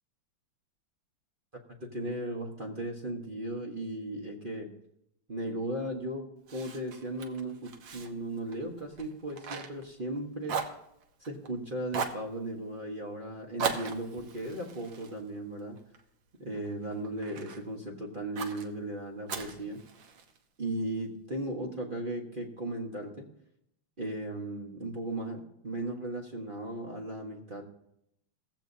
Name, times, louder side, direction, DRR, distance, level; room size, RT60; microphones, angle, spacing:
voice 1, 1.8-4.7 5.3-10.6 11.2-15.8 16.4-19.8 20.6-23.3 24.0-27.6, right 1 dB, 30° right, 0 dB, 1.2 m, -36 dB
Fire, 6.5-10.2 10.4-11.5 11.9-12.3 13.6-16.0 16.5-17.6 18.4-18.7 19.3-20.4, right 6 dB, 65° right, 1.7 m, -38 dB
17.0 x 15.0 x 2.8 m, 0.77 s
omnidirectional pair, 2.4 m